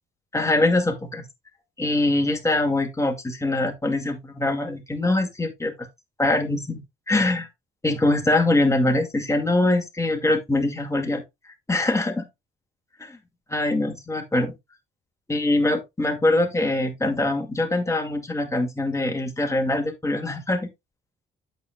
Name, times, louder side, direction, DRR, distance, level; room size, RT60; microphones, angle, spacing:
voice 1, 0.3-1.3 1.8-5.9 6.2-6.8 7.1-7.5 7.8-11.2 11.7-12.3 13.0-13.2 13.5-14.6 15.3-20.7, left 2 dB, 15° left, 2.2 m, -23 dB
8.3 x 7.5 x 2.3 m
cardioid pair, 90°, 20 cm